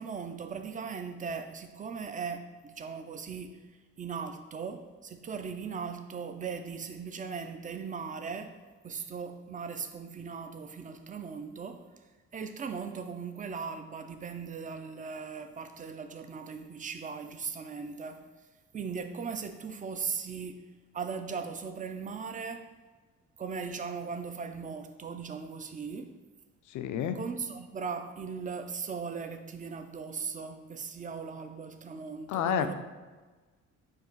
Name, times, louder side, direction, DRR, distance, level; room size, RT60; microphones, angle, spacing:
voice 1, 0.0-3.6 4.0-8.6 8.8-11.8 12.3-18.2 18.7-20.6 20.9-22.7 23.4-26.1 27.1-32.7, right 5 dB, 25° right, 8 dB, 0.4 m, -38 dB
voice 2, 26.7-27.2 32.3-32.7, left 8 dB, 75° left, 9 dB, 0.5 m, -29 dB
4.6 x 2.5 x 4.4 m, 1.3 s
cardioid pair, 90°, 30 cm